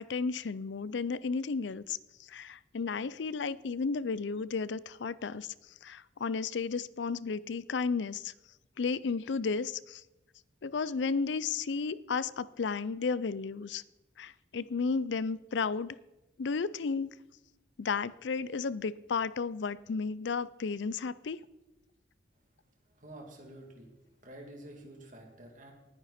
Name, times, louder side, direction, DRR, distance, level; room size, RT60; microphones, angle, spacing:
voice 1, 0.0-2.0 2.3-5.5 5.8-8.3 8.8-10.0 10.6-13.8 14.2-16.0 16.4-17.1 17.8-21.5, left 5 dB, 75° left, 0.5 m, -33 dB
voice 2, 22.8-25.7, right 1 dB, 45° right, 2.6 m, -50 dB
19.0 x 10.0 x 4.3 m
head